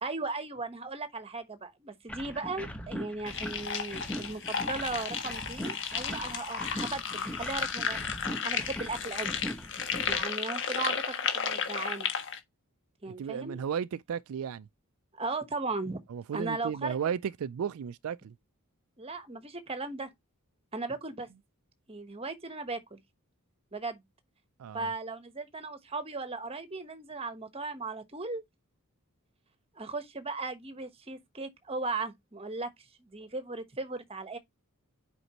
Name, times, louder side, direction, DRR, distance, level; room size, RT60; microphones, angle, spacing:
voice 1, 0.0-8.0 8.4-9.3 10.1-12.1 13.0-13.6 15.1-16.0 16.3-17.0 19.0-20.1 20.7-21.3 21.9-23.0 23.7-24.0 24.7-28.4 29.8-32.7 33.0-34.4, right 3 dB, 25° right, 1.1 m, -37 dB
sound 1, 2.1-10.2, equal, 5° left, 1.1 m, -40 dB
sound 2, 3.3-12.4, left 6 dB, 55° left, 1.4 m, -33 dB
voice 2, 13.1-14.7 16.1-18.3 24.6-24.9, right 7 dB, 75° right, 0.3 m, -34 dB
7.9 x 5.3 x 2.9 m
head